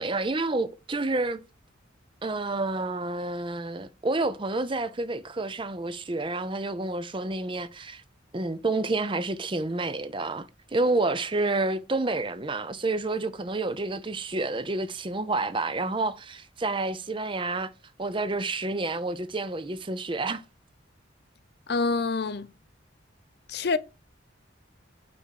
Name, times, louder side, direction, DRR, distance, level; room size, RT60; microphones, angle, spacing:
voice 1, 0.0-1.4 2.2-8.0 8.3-17.7 18.0-20.4, right 2 dB, 25° right, 0.6 m, -29 dB
voice 2, 21.7-22.5 23.5-23.8, left 4 dB, 55° left, 0.6 m, -26 dB
8.7 x 3.6 x 6.4 m
head